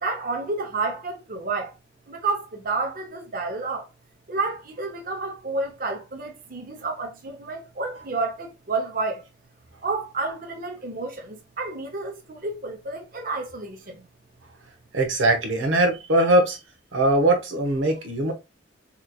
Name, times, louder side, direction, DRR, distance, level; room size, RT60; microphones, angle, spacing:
voice 1, 0.0-1.7 2.1-3.9 4.3-9.2 9.8-14.0, right 3 dB, 50° right, 0.8 m, -30 dB
voice 2, 14.9-16.6 16.9-18.3, right 1 dB, 90° right, 0.9 m, -21 dB
3.9 x 3.0 x 2.3 m
head